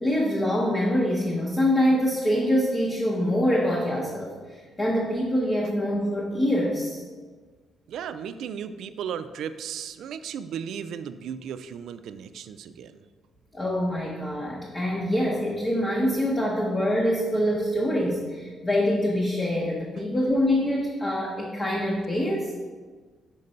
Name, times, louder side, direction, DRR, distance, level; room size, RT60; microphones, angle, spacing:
voice 1, 0.0-7.0 13.5-22.5, equal, 20° left, -3 dB, 0.8 m, -25 dB
voice 2, 7.9-13.1, right 8 dB, 75° right, 12 dB, 0.3 m, -35 dB
5.2 x 3.8 x 5.4 m, 1.5 s
cardioid pair, 120°, 0 cm